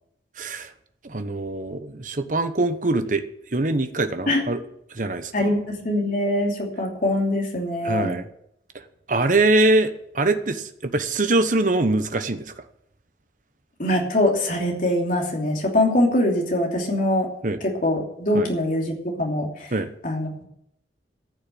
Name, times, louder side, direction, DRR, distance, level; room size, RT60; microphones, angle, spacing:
voice 1, 0.4-0.7 1.0-3.2 3.5-4.6 4.9-5.5 7.8-8.3 9.1-12.6 17.4-17.6 18.3-18.5 19.7-19.9, right 2 dB, 45° right, 9 dB, 1.0 m, -23 dB
voice 2, 5.3-8.1 13.8-17.3 17.8-19.7 20.0-20.4, left 1 dB, 45° left, 0 dB, 3.1 m, -23 dB
14.0 x 6.4 x 8.6 m, 0.74 s
head